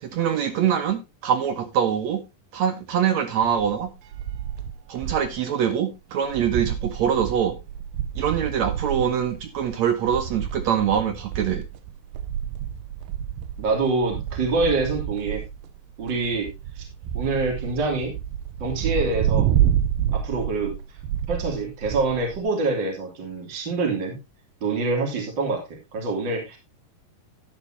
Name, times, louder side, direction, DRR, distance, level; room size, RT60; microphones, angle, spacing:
voice 1, 0.0-2.2 2.5-3.9 4.9-7.6 8.2-11.6, right 8 dB, 65° right, 1.9 m, -24 dB
sound 1, 3.4-5.4 5.7-5.8 6.1-22.4, right 10 dB, 80° right, 2.5 m, -29 dB
voice 2, 13.6-15.4 16.0-16.5 16.8-16.9 17.1-18.1 18.6-19.5 20.1-20.7 21.3-24.2 24.6-25.6 25.9-26.6, right 3 dB, 30° right, 3.2 m, -25 dB
11.5 x 10.5 x 2.8 m
omnidirectional pair, 4.2 m